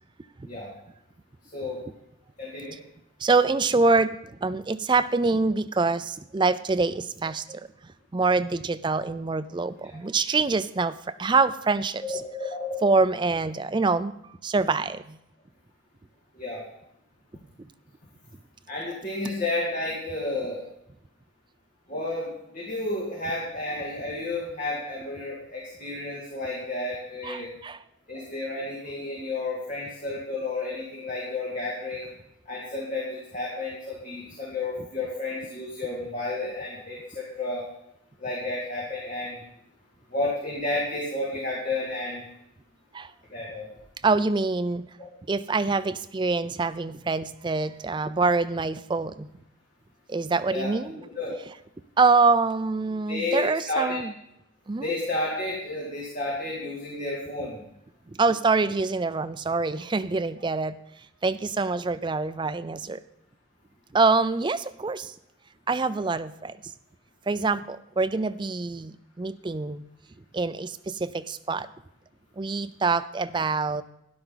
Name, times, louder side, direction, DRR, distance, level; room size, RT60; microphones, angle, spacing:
voice 1, 2.4-2.7 12.3-12.9 16.3-16.6 18.7-20.6 21.9-27.5 28.1-32.1 32.5-37.6 38.2-39.4 40.1-42.2 43.3-43.7 45.0-45.1 50.5-51.3 53.1-54.0 54.8-57.6, left 2 dB, 40° left, -5 dB, 2.4 m, -31 dB
voice 2, 3.2-4.2 4.4-7.6 8.1-12.5 12.8-14.1 14.4-15.2 27.2-27.8 42.9-43.1 44.0-44.9 45.3-49.3 50.1-51.6 52.0-54.1 54.7-55.0 58.1-60.8 61.2-63.0 63.9-65.1 65.7-66.6 67.3-69.8 70.3-71.7 72.4-73.8, right 3 dB, 25° right, 12 dB, 0.4 m, -25 dB
12.5 x 11.0 x 3.9 m, 0.79 s
head